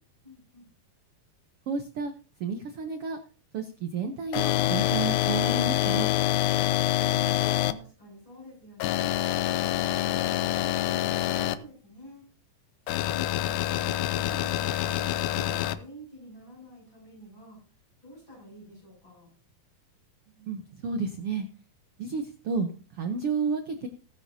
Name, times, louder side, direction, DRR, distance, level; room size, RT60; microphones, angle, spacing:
voice 1, 0.2-0.7 6.9-9.2 9.7-12.2 13.1-17.6 18.0-19.3, equal, 30° left, -4 dB, 8.2 m, -48 dB
voice 2, 1.7-2.1 2.4-3.2 3.5-6.1 20.4-21.5 22.0-22.7 23.0-23.9, right 5 dB, 85° right, 7 dB, 1.2 m, -31 dB
sound 1, 4.3-7.7 8.8-11.5 12.9-15.7, left 13 dB, 85° left, 2.4 m, -26 dB
18.5 x 9.9 x 2.8 m, 0.38 s
omnidirectional pair, 4.0 m